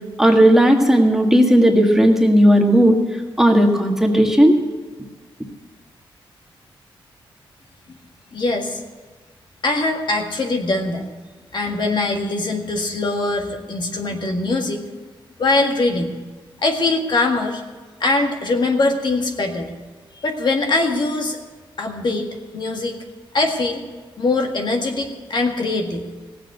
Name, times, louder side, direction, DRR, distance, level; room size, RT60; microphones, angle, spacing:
voice 1, 0.2-3.0 3.4-4.6, equal, 5° right, 2 dB, 1.7 m, -14 dB
voice 2, 8.3-8.8 9.6-11.1 11.5-14.8 15.4-16.2 16.6-17.6 18.0-19.7 20.1-21.4 21.8-23.0 23.3-23.8 24.2-26.1, left 2 dB, 55° left, 3 dB, 1.8 m, -22 dB
16.5 x 7.7 x 8.0 m, 1.3 s
cardioid pair, 90°, 9 cm